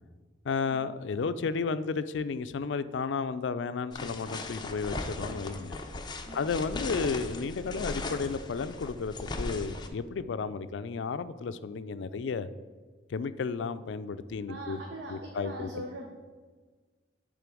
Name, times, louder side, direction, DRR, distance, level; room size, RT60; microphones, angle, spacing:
voice 1, 0.4-5.8 6.3-12.5 13.1-14.8 15.1-15.8, left 5 dB, 80° left, 13 dB, 0.4 m, -33 dB
sound 1, 3.9-9.9, left 2 dB, 25° left, 0.6 m, -38 dB
voice 2, 14.5-16.1, right 1 dB, 65° right, 0 dB, 0.9 m, -41 dB
8.4 x 3.8 x 6.1 m, 1.4 s
head